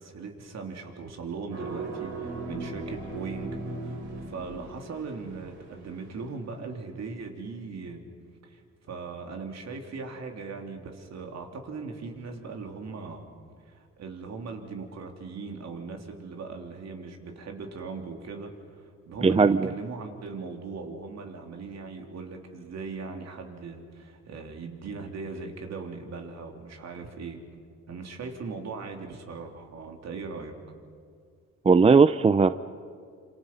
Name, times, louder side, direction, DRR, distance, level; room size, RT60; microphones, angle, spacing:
voice 1, 0.0-8.0 8.4-8.6 8.9-13.3 13.6-27.4 27.9-30.6, right 4 dB, 60° right, 3 dB, 3.4 m, -39 dB
sound 1, 1.5-6.4, right 3 dB, 85° right, 6.1 m, -38 dB
voice 2, 19.2-19.7 31.7-32.5, right 4 dB, 20° right, 13 dB, 0.5 m, -18 dB
27.0 x 27.0 x 5.6 m, 2.2 s
cardioid pair, 90°, 30 cm